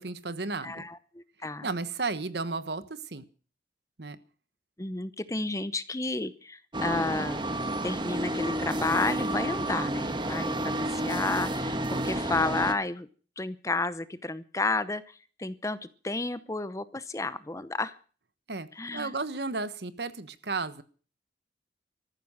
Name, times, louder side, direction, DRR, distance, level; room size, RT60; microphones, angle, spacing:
voice 1, 0.0-0.9 1.6-3.2 4.0-4.2 18.5-18.7 18.9-20.8, right 3 dB, 65° right, 13 dB, 1.3 m, -33 dB
voice 2, 0.6-1.7 4.8-7.4 7.8-13.1 13.4-15.8 16.0-18.0 18.7-19.1, left 3 dB, 15° left, 15 dB, 0.8 m, -31 dB
sound 1, 6.7-12.7, right 1 dB, 25° right, 1.3 m, -30 dB
14.0 x 13.0 x 6.4 m, 0.40 s
head